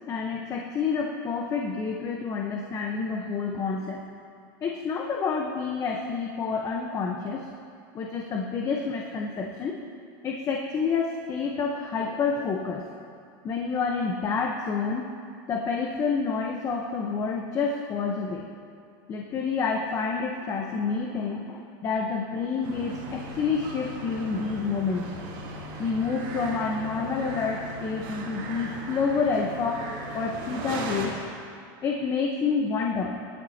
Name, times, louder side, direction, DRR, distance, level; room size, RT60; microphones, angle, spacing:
voice 1, 0.1-4.0 4.6-7.5 7.9-9.8 10.2-12.8 13.4-15.1 15.5-18.4 19.1-25.1 25.8-29.9 30.1-31.2 31.8-33.2, left 5 dB, 30° left, 1 dB, 1.0 m, -28 dB
sound 1, 22.6-31.1, right 1 dB, 55° right, 3.7 m, -37 dB
21.0 x 12.5 x 2.9 m, 2.3 s
supercardioid pair, 140°, 11 cm